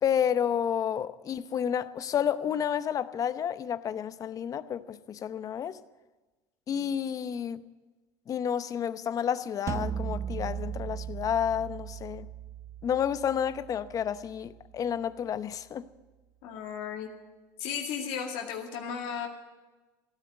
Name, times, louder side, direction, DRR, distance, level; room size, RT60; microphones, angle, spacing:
voice 1, 0.0-5.8 6.7-7.6 8.3-12.3 12.8-15.9, left 8 dB, 40° left, 0.8 m, -30 dB
sound 1, 9.7-14.7, right 8 dB, 35° right, 0.7 m, -38 dB
voice 2, 16.4-17.1 17.6-19.3, left 7 dB, 70° left, 2.1 m, -35 dB
16.0 x 10.0 x 7.9 m
supercardioid pair, 95°, 9 cm